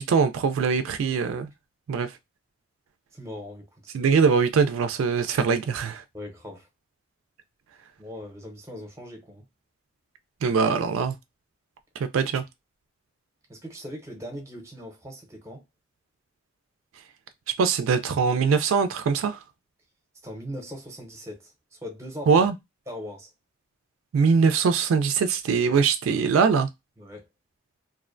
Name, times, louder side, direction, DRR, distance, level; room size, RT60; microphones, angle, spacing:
voice 1, 0.0-1.5 1.9-2.1 3.9-6.0 10.4-11.1 12.0-12.4 17.6-19.4 22.3-22.5 24.1-26.7, right 5 dB, 75° right, 0.3 m, -22 dB
voice 2, 3.1-3.9 6.1-6.7 8.0-9.4 13.5-15.6 20.2-22.5 22.9-23.3 25.7-25.8 27.0-27.3, equal, 15° right, 0.6 m, -40 dB
2.5 x 2.1 x 2.4 m
head